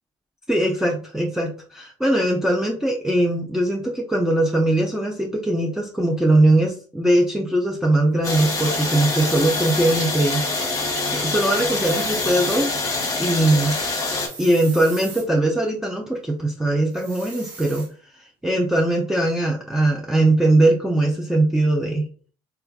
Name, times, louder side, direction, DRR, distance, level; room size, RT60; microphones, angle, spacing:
voice 1, 0.5-10.4 11.1-12.9 13.2-13.8 14.4-17.9 18.4-22.0, right 1 dB, 5° right, -2 dB, 0.5 m, -20 dB
sound 1, 8.2-14.3, left 2 dB, 30° left, 0.9 m, -25 dB
sound 2, 9.0-10.1 11.5-12.7 14.2-15.3 16.9-17.9, right 4 dB, 80° right, 0.9 m, -38 dB
3.2 x 2.3 x 2.3 m, 0.41 s
hypercardioid pair, 65°, 12 cm